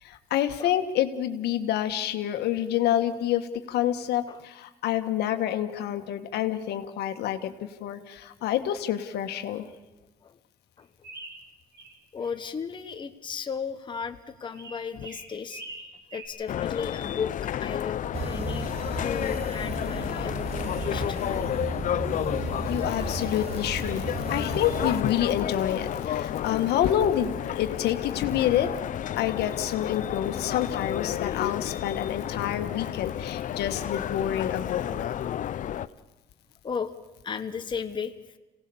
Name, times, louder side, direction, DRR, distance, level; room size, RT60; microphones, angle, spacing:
voice 1, 0.0-9.7 22.6-28.7 29.2-35.1, left 11 dB, 75° left, 7 dB, 1.6 m, -28 dB
sound 1, 11.0-11.9 12.2-12.9 14.5-16.3, right 2 dB, 75° right, 7.4 m, -43 dB
voice 2, 12.1-15.6 16.1-18.7 19.0-21.2 26.0-26.1 36.6-36.9 37.2-38.1, left 6 dB, 30° left, 7 dB, 1.1 m, -35 dB
sound 2, 16.5-35.9, left 10 dB, 50° left, 0.7 m, -31 dB
sound 3, 18.1-25.0, right 5 dB, 35° right, 1.0 m, -35 dB
26.5 x 18.0 x 7.1 m, 1.1 s
cardioid pair, 110°, 17 cm